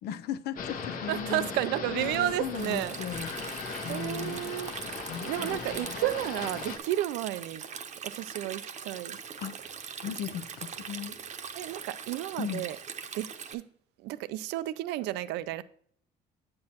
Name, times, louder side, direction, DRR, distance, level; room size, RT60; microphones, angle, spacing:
voice 1, 0.0-1.5 1.9-4.4 5.1-5.8 9.4-9.5 10.0-11.2 12.4-12.6, left 9 dB, 75° left, 0.6 m, -37 dB
sound 1, 0.6-6.8, left 5 dB, 55° left, 1.0 m, -38 dB
voice 2, 1.1-3.0 3.9-4.8 5.2-7.6 8.1-9.2 11.5-12.8 13.1-13.6 14.0-15.6, right 14 dB, 85° right, 0.4 m, -32 dB
Stream, 2.5-13.5, right 7 dB, 45° right, 0.8 m, -41 dB
8.6 x 7.6 x 2.9 m
cardioid pair, 110°, 17 cm